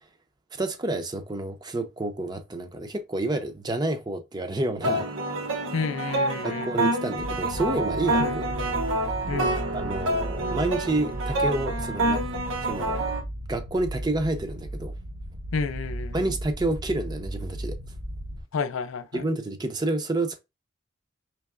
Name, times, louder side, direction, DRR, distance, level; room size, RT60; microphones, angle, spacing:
voice 1, 0.5-5.2 6.4-8.8 9.7-12.2 12.6-13.0 13.5-14.9 16.1-17.7 19.1-20.4, right 2 dB, 20° right, 0.4 m, -29 dB
sound 1, 4.8-13.2, right 2 dB, 75° right, 0.8 m, -27 dB
voice 2, 5.7-6.7 8.2-8.3 9.3-9.6 15.5-16.2 18.5-19.2, left 5 dB, 90° left, 0.4 m, -30 dB
sound 2, 7.2-18.4, right 1 dB, 90° right, 1.2 m, -36 dB
sound 3, 7.7-13.0, equal, 40° left, 0.8 m, -45 dB
4.6 x 3.1 x 2.4 m
head